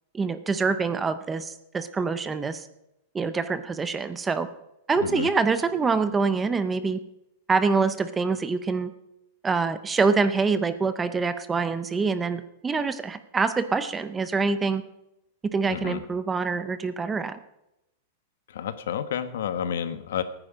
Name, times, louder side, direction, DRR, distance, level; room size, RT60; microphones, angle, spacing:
voice 1, 0.1-2.6 3.1-4.5 4.9-7.0 7.5-8.9 9.4-14.8 15.5-17.4, right 4 dB, 10° right, 12 dB, 0.5 m, -25 dB
voice 2, 15.7-16.0 18.5-20.2, left 8 dB, 80° left, 11 dB, 1.3 m, -30 dB
18.5 x 9.8 x 5.1 m, 0.88 s
supercardioid pair, 180°, 0 cm